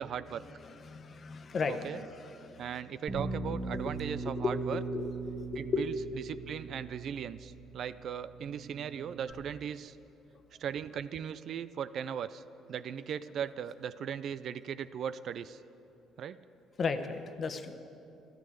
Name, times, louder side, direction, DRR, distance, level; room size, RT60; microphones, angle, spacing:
voice 1, 0.0-0.4 1.7-2.0 2.6-4.8 5.6-5.9 6.3-10.0 10.6-12.4 12.7-15.6 16.2-16.4, right 8 dB, 60° right, 15 dB, 0.4 m, -38 dB
voice 2, 0.6-2.6 3.7-5.9 16.8-17.7, left 4 dB, 45° left, 8 dB, 1.1 m, -35 dB
Bass guitar, 3.1-9.3, right 4 dB, 30° right, 2.1 m, -40 dB
13.0 x 12.0 x 7.8 m, 2.8 s
supercardioid pair, 85°, 0 cm